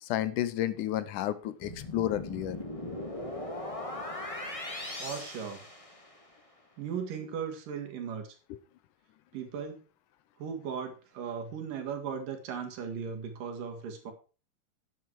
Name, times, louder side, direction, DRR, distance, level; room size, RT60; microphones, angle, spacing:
voice 1, 0.0-2.6 8.5-8.6, left 12 dB, 80° left, 14 dB, 2.2 m, -31 dB
sound 1, 1.6-6.4, left 1 dB, 25° left, 0.7 m, -39 dB
voice 2, 5.0-5.6 6.8-8.3 9.3-9.8 10.4-14.1, right 7 dB, 80° right, 5 dB, 3.5 m, -37 dB
10.5 x 7.9 x 4.6 m, 0.35 s
omnidirectional pair, 3.8 m